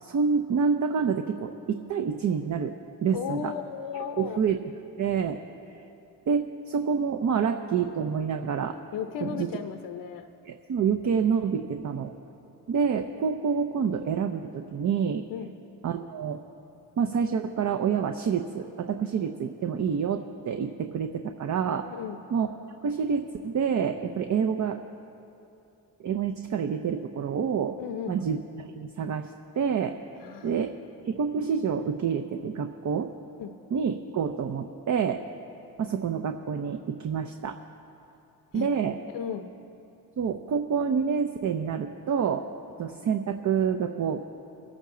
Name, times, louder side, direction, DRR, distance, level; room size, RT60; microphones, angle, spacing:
voice 1, 0.0-3.5 4.2-4.6 5.0-5.4 6.3-8.8 9.2-9.5 10.4-12.1 12.7-15.2 15.8-16.4 17.0-21.9 22.3-22.5 22.8-24.8 26.0-27.8 28.1-30.0 30.4-30.7 31.0-33.1 33.7-35.2 35.8-37.6 38.5-39.0 40.2-42.5 42.8-44.2, right 6 dB, 45° right, 7 dB, 0.7 m, -27 dB
voice 2, 3.1-4.4 8.9-10.3 15.3-15.5 21.8-22.2 27.8-28.2 30.2-30.6 33.4-33.5 38.5-39.5, left 8 dB, 70° left, 7 dB, 0.8 m, -35 dB
23.0 x 8.8 x 3.8 m, 2.8 s
supercardioid pair, 70°, 40 cm